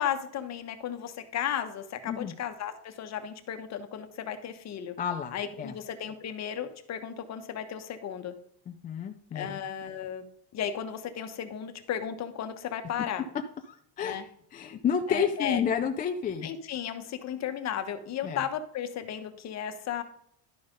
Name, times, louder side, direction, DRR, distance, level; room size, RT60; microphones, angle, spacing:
voice 1, 0.0-4.9 5.3-8.3 9.3-10.2 10.5-13.3 14.0-14.2 15.1-15.6 16.4-20.0, left 9 dB, 40° left, 8 dB, 1.1 m, -34 dB
voice 2, 5.0-5.7 8.7-9.6 13.7-14.2 14.5-16.5 18.2-18.4, left 7 dB, 20° left, 5 dB, 0.3 m, -30 dB
11.5 x 5.5 x 5.1 m, 0.65 s
cardioid pair, 150°, 43 cm